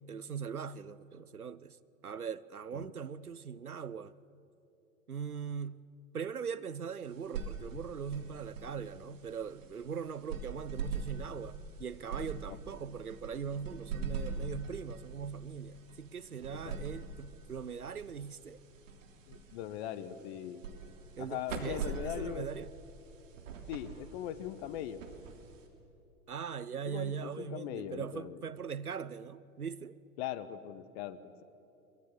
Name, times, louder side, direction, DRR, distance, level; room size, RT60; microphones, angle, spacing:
voice 1, 0.0-1.8 2.0-4.2 5.1-5.8 6.1-18.6 21.2-22.7 26.3-30.0, right 6 dB, 90° right, 0.7 m, -40 dB
sound 1, 7.0-25.9, right 4 dB, 60° right, 3.1 m, -43 dB
voice 2, 19.3-20.6 21.2-22.5 23.7-25.0 26.9-28.4 30.2-31.4, left 11 dB, 45° left, 1.2 m, -40 dB
22.5 x 22.5 x 7.5 m
figure-of-eight pair, 95°, 43 cm